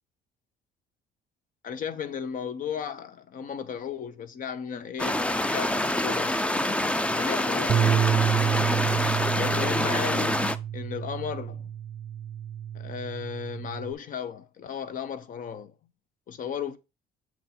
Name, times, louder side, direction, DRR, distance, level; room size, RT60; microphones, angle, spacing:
voice 1, 1.6-6.4 7.1-8.3 9.3-11.7 12.7-15.7 16.3-16.8, left 8 dB, 50° left, 0.9 m, -35 dB
sound 1, 5.0-10.6, left 1 dB, 5° left, 0.5 m, -26 dB
Bass guitar, 7.7-13.9, right 9 dB, 40° right, 0.6 m, -29 dB
7.3 x 3.9 x 4.4 m
cardioid pair, 110°, 17 cm